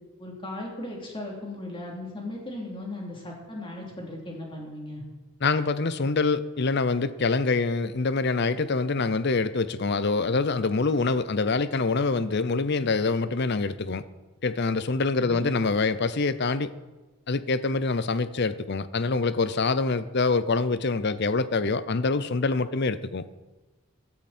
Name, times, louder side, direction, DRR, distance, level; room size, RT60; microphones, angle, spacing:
voice 1, 0.2-5.0 15.2-15.5, left 1 dB, 25° left, 3.2 m, -37 dB
voice 2, 5.4-14.0 14.4-16.7 17.3-23.2, left 3 dB, 50° left, 0.6 m, -25 dB
16.0 x 12.5 x 4.4 m
head